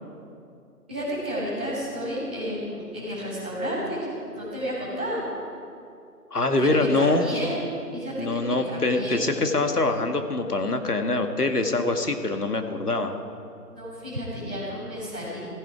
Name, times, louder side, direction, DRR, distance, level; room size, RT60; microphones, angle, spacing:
voice 1, 0.9-4.1 4.3-5.2 6.6-7.6 7.9-9.3 13.7-15.4, equal, 5° right, -14 dB, 2.0 m, -31 dB
voice 2, 6.3-7.3 8.2-13.2, left 2 dB, 70° left, 6 dB, 1.7 m, -24 dB
16.0 x 15.0 x 4.9 m, 2.5 s
figure-of-eight pair, 165°, 48 cm